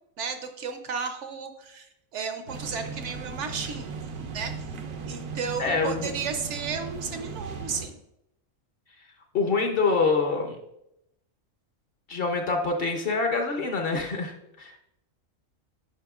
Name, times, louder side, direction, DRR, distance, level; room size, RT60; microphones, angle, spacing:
voice 1, 0.2-1.9 2.1-4.0 4.3-4.5 5.1-8.0, right 5 dB, 70° right, 7 dB, 0.9 m, -33 dB
sound 1, 2.5-7.9, right 5 dB, 85° right, 1.1 m, -37 dB
voice 2, 5.6-6.1 9.3-10.6 12.1-14.8, left 4 dB, 50° left, 4 dB, 0.8 m, -26 dB
8.8 x 5.5 x 2.4 m, 0.83 s
omnidirectional pair, 1.4 m